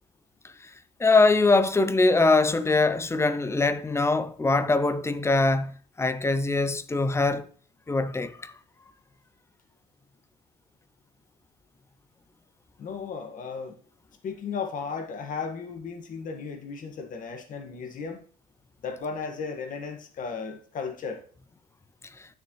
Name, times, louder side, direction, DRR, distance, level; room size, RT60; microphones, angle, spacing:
voice 1, 1.0-5.7 6.0-7.5 7.9-8.5, left 3 dB, 15° left, 0.6 m, -22 dB
voice 2, 12.8-13.8 14.2-18.2 18.8-21.2, left 5 dB, 50° left, 1.7 m, -35 dB
9.3 x 6.8 x 3.2 m
cardioid pair, 110°, 17 cm